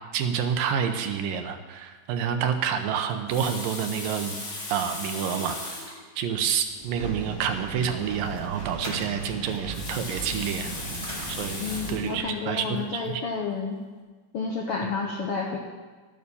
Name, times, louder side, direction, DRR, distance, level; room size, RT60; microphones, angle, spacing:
voice 1, 0.1-4.4 4.7-10.7 11.3-12.7 12.9-13.1, right 8 dB, 80° right, 7 dB, 2.6 m, -28 dB
Water tap faucet, 3.1-6.0 6.8-6.9 7.2-7.3 9.5-12.1 12.8-13.0, left 2 dB, 55° left, 3.7 m, -37 dB
sound 1, 6.6-11.9, right 1 dB, 10° right, 1.5 m, -44 dB
Engine, 6.9-12.2, right 3 dB, 30° right, 4.8 m, -37 dB
voice 2, 11.6-13.8 14.3-15.6, left 4 dB, 75° left, 0 dB, 1.3 m, -30 dB
12.5 x 9.3 x 7.0 m, 1.4 s
omnidirectional pair, 4.0 m